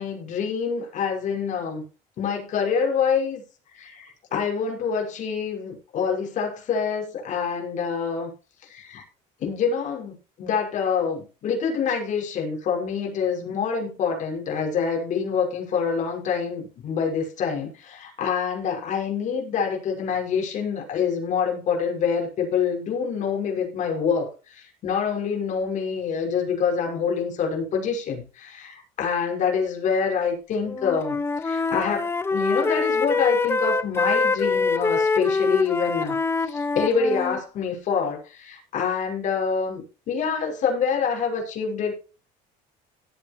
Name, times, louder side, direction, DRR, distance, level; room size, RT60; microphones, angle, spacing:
voice 1, 0.0-1.8 2.2-3.4 3.7-8.3 8.6-9.0 9.4-41.9, left 6 dB, 50° left, 0 dB, 5.9 m, -26 dB
Wind instrument woodwind instrument, 30.7-37.4, left 4 dB, 15° left, 0.7 m, -24 dB
16.5 x 9.0 x 3.2 m, 0.34 s
cardioid pair, 130°, 16 cm